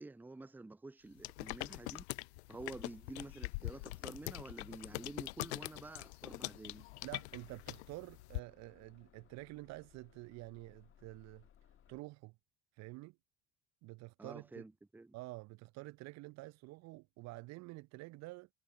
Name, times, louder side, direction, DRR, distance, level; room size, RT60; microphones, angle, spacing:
voice 1, 0.0-2.1 2.5-6.9 14.2-15.1, right 2 dB, 5° right, 0.7 m, -49 dB
sound 1, 1.2-8.4, left 23 dB, 65° left, 0.5 m, -43 dB
Bus / Engine starting, 5.3-12.0, left 9 dB, 35° left, 1.4 m, -66 dB
voice 2, 7.0-11.5 11.9-12.4 12.8-13.2 13.8-14.6 15.1-18.5, right 21 dB, 50° right, 0.7 m, -49 dB
figure-of-eight pair, 60°, 35 cm